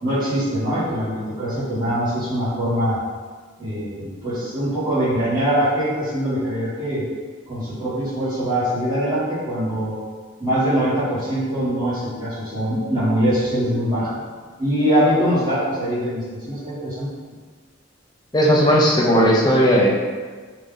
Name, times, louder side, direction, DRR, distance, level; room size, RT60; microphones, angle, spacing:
voice 1, 0.0-3.0 3.6-7.0 7.5-10.0 10.4-14.2 14.6-17.1, equal, 20° right, -13 dB, 1.4 m, -22 dB
voice 2, 18.3-19.9, equal, 20° left, -3 dB, 0.5 m, -16 dB
3.3 x 2.5 x 3.6 m, 1.5 s
head